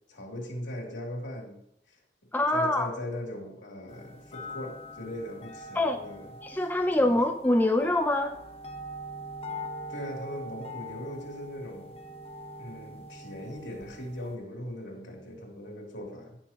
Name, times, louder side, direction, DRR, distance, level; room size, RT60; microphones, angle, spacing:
voice 1, 0.1-1.6 1.9-2.0 2.5-6.3 7.0-7.2 9.9-12.0 12.6-16.4, left 1 dB, 85° left, -1 dB, 2.9 m, -39 dB
voice 2, 2.3-2.9 5.7-6.0 6.4-8.4, left 1 dB, 10° left, 5 dB, 0.5 m, -25 dB
sound 1, 3.9-14.3, equal, 35° left, 1.0 m, -43 dB
16.0 x 6.0 x 2.9 m, 0.79 s
head